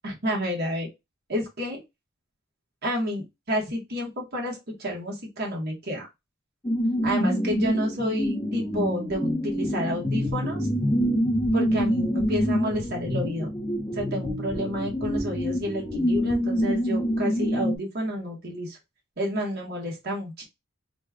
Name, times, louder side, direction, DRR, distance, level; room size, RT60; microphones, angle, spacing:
voice 1, 0.0-0.9 1.3-1.8 2.8-6.1 7.0-10.7 11.5-13.5 13.9-18.8 19.2-20.5, equal, 50° right, -1 dB, 1.2 m, -30 dB
sound 1, 6.6-17.8, equal, 15° left, 0.5 m, -26 dB
3.1 x 2.3 x 3.4 m, 0.22 s
head